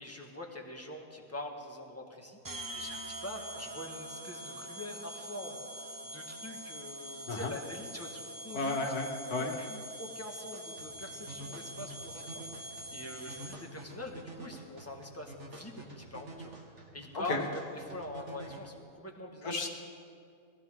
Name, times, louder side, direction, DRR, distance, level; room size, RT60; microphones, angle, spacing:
voice 1, 0.0-8.8 9.2-16.5 16.9-19.5, left 1 dB, 10° left, 0 dB, 1.5 m, -44 dB
sound 1, 2.4-13.8, right 1 dB, 20° right, 0.5 m, -44 dB
voice 2, 8.5-9.6 17.3-17.4 19.4-19.7, left 3 dB, 90° left, 3 dB, 2.0 m, -33 dB
sound 2, 10.5-18.6, right 2 dB, 50° right, 2.1 m, -48 dB
21.0 x 15.5 x 3.7 m, 2.3 s
omnidirectional pair, 1.6 m